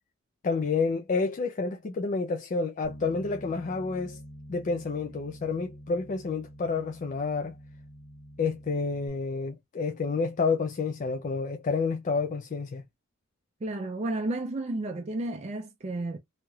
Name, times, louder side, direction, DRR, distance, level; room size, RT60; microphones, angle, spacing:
voice 1, 0.4-4.2 4.5-7.5 8.4-12.8, left 4 dB, 40° left, 0.4 m, -29 dB
Bass guitar, 2.8-9.1, equal, 75° left, 1.3 m, -46 dB
voice 2, 13.6-16.2, right 2 dB, 30° right, 0.4 m, -32 dB
3.1 x 2.8 x 2.3 m
head